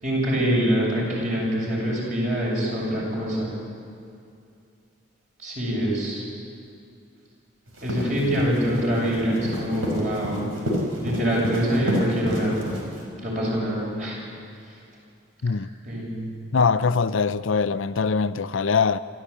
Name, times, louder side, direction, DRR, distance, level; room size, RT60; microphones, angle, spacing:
voice 1, 0.0-3.5 5.4-6.2 7.8-10.5 11.0-12.6 13.2-14.2 15.8-16.3, equal, 35° right, 7.2 m, -25 dB
sound 1, 7.7-13.1, equal, 90° right, 5.0 m, -29 dB
voice 2, 16.5-19.0, left 5 dB, 70° left, 0.5 m, -22 dB
27.5 x 14.0 x 8.6 m
head